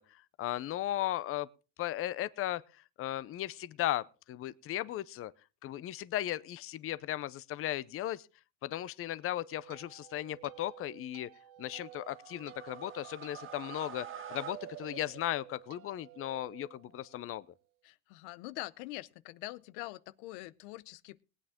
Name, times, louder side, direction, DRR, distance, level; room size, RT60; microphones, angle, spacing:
voice 1, 0.0-1.5 1.8-5.3 5.6-8.3 8.6-11.3 11.6-17.5, left 13 dB, 40° left, 0.6 m, -36 dB
sound 1, 9.2-17.5, right 15 dB, 70° right, 1.2 m, -54 dB
sound 2, 11.9-15.7, right 8 dB, 35° right, 1.8 m, -47 dB
voice 2, 17.8-21.2, left 19 dB, 85° left, 0.8 m, -44 dB
19.5 x 9.0 x 3.6 m
supercardioid pair, 115°, 35 cm